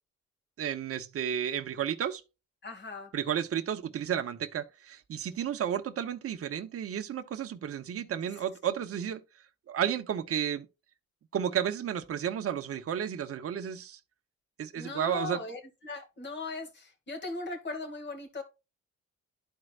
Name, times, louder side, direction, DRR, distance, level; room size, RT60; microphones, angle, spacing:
voice 1, 0.6-2.2 3.1-9.2 9.7-10.7 11.3-14.0 14.6-15.4, right 9 dB, 50° right, 0.9 m, -32 dB
voice 2, 2.6-3.1 14.7-18.4, left 3 dB, 35° left, 2.4 m, -38 dB
12.5 x 4.4 x 2.5 m
cardioid pair, 90°, 30 cm